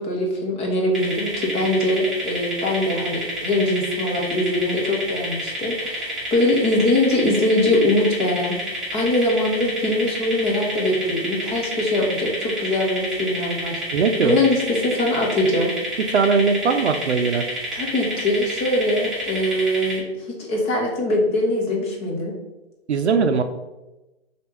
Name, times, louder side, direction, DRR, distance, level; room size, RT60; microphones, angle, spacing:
voice 1, 0.0-8.6 8.9-15.7 17.7-22.3, left 1 dB, 20° left, 0 dB, 0.7 m, -22 dB
sound 1, 0.9-20.0, equal, ahead, 1.2 m, -29 dB
voice 2, 13.9-14.4 16.1-17.4 22.9-23.4, right 5 dB, 75° right, 8 dB, 0.5 m, -19 dB
3.2 x 2.8 x 4.4 m, 1.0 s
figure-of-eight pair, 120°, 33 cm